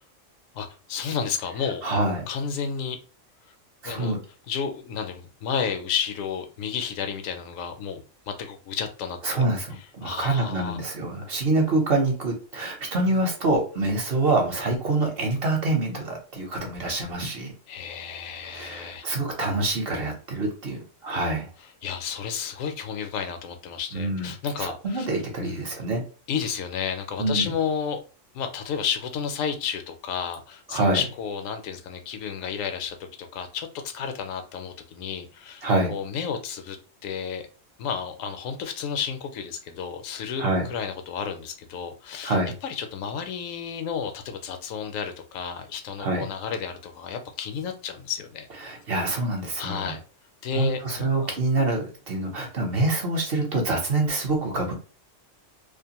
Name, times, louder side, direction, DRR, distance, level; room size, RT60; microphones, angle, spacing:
voice 1, 0.5-1.8 2.3-3.0 3.8-4.1 4.5-9.5 10.0-10.8 17.7-19.1 21.8-25.1 25.4-25.7 26.3-28.0 28.3-36.8 37.0-37.5 37.8-42.4 42.6-48.5 49.6-50.0 50.4-51.3, left 7 dB, 85° left, 7 dB, 1.0 m, -32 dB
voice 2, 1.8-2.3 3.8-4.2 9.2-17.5 18.4-21.5 23.9-24.3 24.6-26.0 27.2-27.5 30.7-31.0 35.6-35.9 40.4-40.7 42.2-42.5 46.0-46.3 48.6-50.0 50.6-54.7, right 2 dB, 55° right, 1 dB, 0.9 m, -26 dB
2.5 x 2.4 x 2.8 m, 0.36 s
omnidirectional pair, 1.3 m